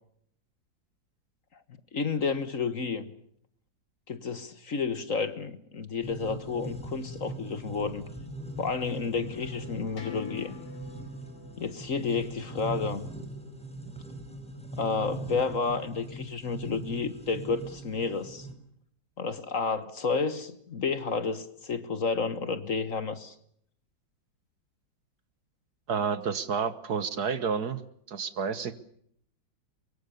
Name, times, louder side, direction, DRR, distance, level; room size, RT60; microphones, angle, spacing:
voice 1, 1.9-3.1 4.1-8.1 8.6-10.5 11.6-13.1 14.8-18.5 19.2-23.3, left 4 dB, 45° left, 13 dB, 1.6 m, -31 dB
sound 1, 6.0-18.5, right 2 dB, 5° left, 4.9 m, -41 dB
sound 2, 7.9-13.7, left 7 dB, 70° left, 3.5 m, -49 dB
voice 2, 25.9-27.8 28.1-28.7, right 6 dB, 55° right, 14 dB, 1.8 m, -30 dB
24.0 x 23.5 x 6.9 m, 0.68 s
omnidirectional pair, 2.0 m